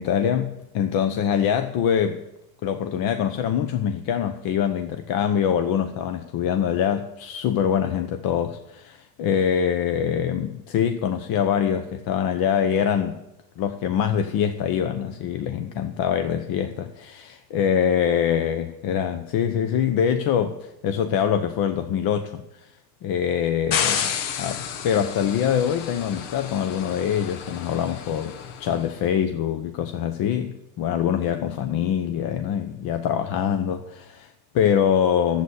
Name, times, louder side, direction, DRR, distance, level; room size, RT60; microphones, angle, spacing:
voice 1, 0.0-2.2 2.6-13.2 13.6-22.7 23.0-24.1 24.4-35.4, left 8 dB, 60° left, 0.9 m, -24 dB
sound 1, 23.7-28.8, left 8 dB, 85° left, 1.2 m, -31 dB
11.0 x 8.1 x 8.1 m
cardioid pair, 120°, 41 cm